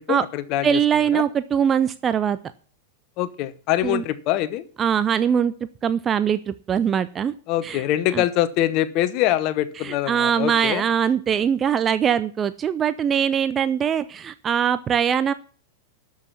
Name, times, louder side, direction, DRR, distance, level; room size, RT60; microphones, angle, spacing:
voice 1, 0.0-0.8 1.1-1.2 3.2-4.6 7.5-10.8, left 13 dB, 40° left, 14 dB, 1.1 m, -24 dB
voice 2, 0.6-2.4 3.8-4.0 4.8-5.5 5.8-7.3 7.6-7.8 8.1-8.2 9.8-15.3, right 8 dB, 25° right, 14 dB, 0.6 m, -22 dB
12.5 x 6.6 x 7.2 m, 0.42 s
figure-of-eight pair, 90°, 0 cm